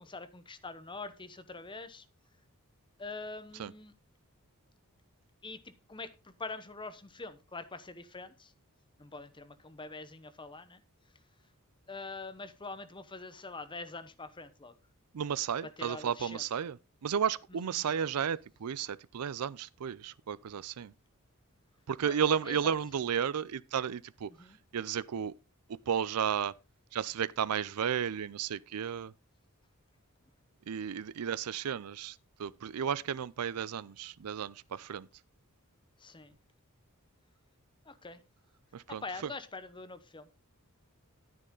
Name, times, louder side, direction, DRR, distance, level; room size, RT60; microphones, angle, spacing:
voice 1, 0.0-2.1 3.0-3.9 5.4-8.5 9.0-10.8 11.9-14.7 15.6-16.4 17.5-17.9 22.0-22.7 24.3-24.6 36.0-36.4 37.8-38.2 38.9-40.3, left 3 dB, 20° left, 0.9 m, -44 dB
voice 2, 15.1-16.8 17.0-20.9 21.9-24.3 24.7-25.3 25.7-26.5 26.9-29.1 30.7-35.1 38.7-39.0, right 8 dB, 85° right, 0.4 m, -33 dB
10.0 x 9.6 x 3.8 m
head